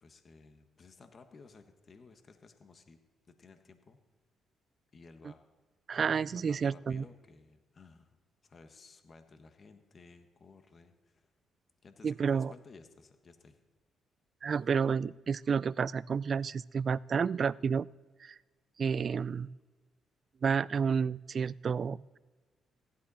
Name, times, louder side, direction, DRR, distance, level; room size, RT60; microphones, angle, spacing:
voice 1, 0.0-3.0 3.3-4.0 4.9-5.4 6.5-11.3 11.8-13.6, left 4 dB, 45° left, 7 dB, 1.4 m, -56 dB
voice 2, 5.9-7.0 12.0-12.5 14.4-17.9 18.2-18.3 18.8-19.5 20.4-22.2, right 6 dB, 50° right, 21 dB, 0.3 m, -30 dB
15.5 x 11.5 x 4.2 m, 1.3 s
cardioid pair, 75°, 0 cm